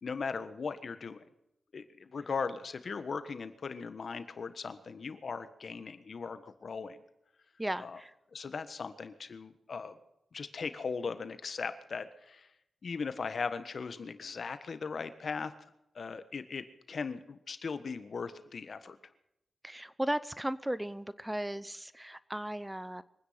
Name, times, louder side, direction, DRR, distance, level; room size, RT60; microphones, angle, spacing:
voice 1, 0.0-1.2 1.7-7.0 7.8-8.0 8.3-10.0 10.3-12.5 12.8-15.5 15.9-19.0, left 5 dB, 60° left, 11 dB, 1.4 m, -38 dB
voice 2, 7.6-8.1 19.6-23.0, right 1 dB, 10° right, 16 dB, 0.7 m, -36 dB
24.0 x 9.7 x 5.8 m, 0.83 s
cardioid pair, 55°, 0 cm